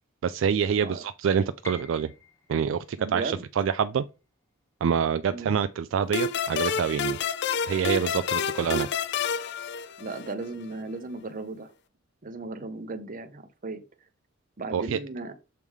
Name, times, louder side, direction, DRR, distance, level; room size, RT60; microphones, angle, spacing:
voice 1, 0.2-2.1 2.5-4.0 4.8-7.2 7.7-8.9 14.7-15.0, right 7 dB, 65° right, 0.3 m, -26 dB
voice 2, 0.7-1.0 3.0-3.4 5.2-5.6 10.0-11.7 12.2-13.8 14.6-15.3, right 3 dB, 40° right, 0.8 m, -36 dB
Piano, 1.6-7.6 7.9-9.1 9.5-9.6 10.3-10.6, left 3 dB, 15° left, 1.4 m, -52 dB
sound 1, 6.1-10.5, left 6 dB, 55° left, 0.5 m, -29 dB
6.8 x 3.6 x 4.7 m
head